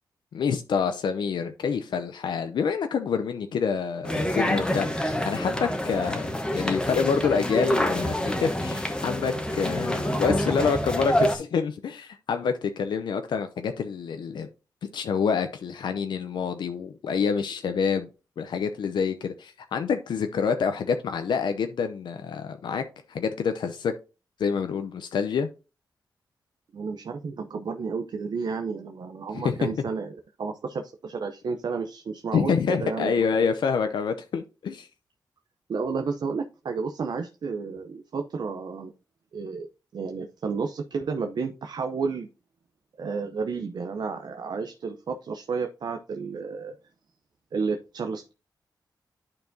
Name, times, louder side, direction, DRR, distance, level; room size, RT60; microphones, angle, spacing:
voice 1, 0.3-14.5 14.9-18.1 18.4-23.9 24.4-25.5 29.3-29.8 32.3-34.9, left 6 dB, 80° left, 0.5 m, -27 dB
sound 1, 4.0-11.4, equal, 10° left, 1.0 m, -27 dB
voice 2, 26.7-33.5 35.7-38.9 39.3-39.7 39.9-42.3 43.0-46.7 47.5-48.3, right 5 dB, 65° right, 0.6 m, -31 dB
10.5 x 4.5 x 2.6 m
cardioid pair, 80°, 8 cm